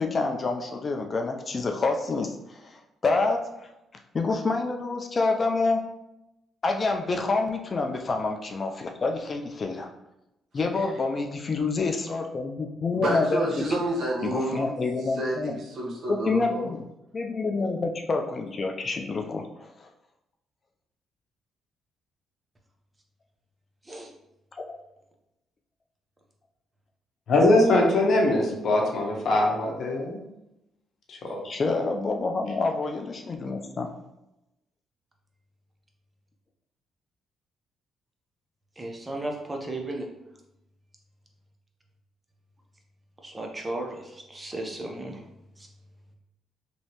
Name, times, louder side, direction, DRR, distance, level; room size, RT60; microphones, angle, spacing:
voice 1, 0.0-3.4 4.1-5.8 6.6-9.9 10.5-13.7 14.2-15.6 16.1-16.8 17.1-19.9 31.4-33.9, left 3 dB, 40° left, 4 dB, 0.4 m, -27 dB
voice 2, 12.9-14.7 15.0-16.7, right 1 dB, 60° right, -4 dB, 1.2 m, -30 dB
voice 3, 27.3-30.2 31.1-31.4, left 2 dB, 60° left, 0 dB, 0.8 m, -22 dB
voice 4, 38.8-40.1 43.2-45.2 45.6-45.7, right 2 dB, 20° right, 2 dB, 0.7 m, -35 dB
3.1 x 2.7 x 2.8 m, 0.89 s
cardioid pair, 90°, 0 cm